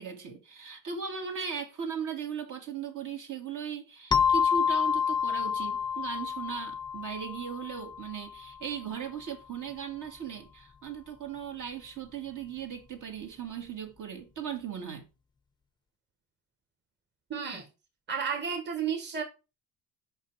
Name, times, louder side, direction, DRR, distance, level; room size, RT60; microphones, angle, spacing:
voice 1, 0.0-15.0, right 7 dB, 60° right, 2.2 m, -38 dB
sound 1, 4.1-8.5, left 7 dB, 15° left, 0.5 m, -28 dB
voice 2, 17.3-17.7 18.1-19.2, right 7 dB, 30° right, 1.4 m, -32 dB
5.5 x 5.2 x 4.7 m
cardioid pair, 100°, 35 cm